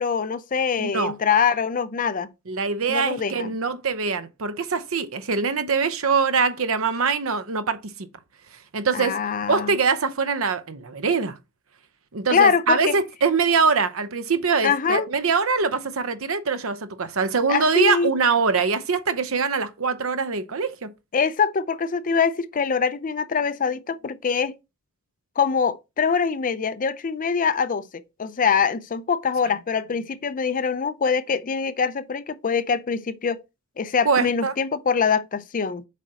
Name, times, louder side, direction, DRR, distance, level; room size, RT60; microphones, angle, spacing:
voice 1, 0.0-2.3 2.9-3.5 8.9-9.8 12.3-12.9 14.6-15.1 17.5-18.1 21.1-24.6 25.4-33.4 33.8-35.8, left 6 dB, 40° left, 0.5 m, -24 dB
voice 2, 0.8-1.1 2.5-7.8 8.7-9.2 9.5-11.4 12.1-20.9 34.0-34.5, right 5 dB, 70° right, 0.8 m, -23 dB
7.6 x 5.0 x 2.9 m
head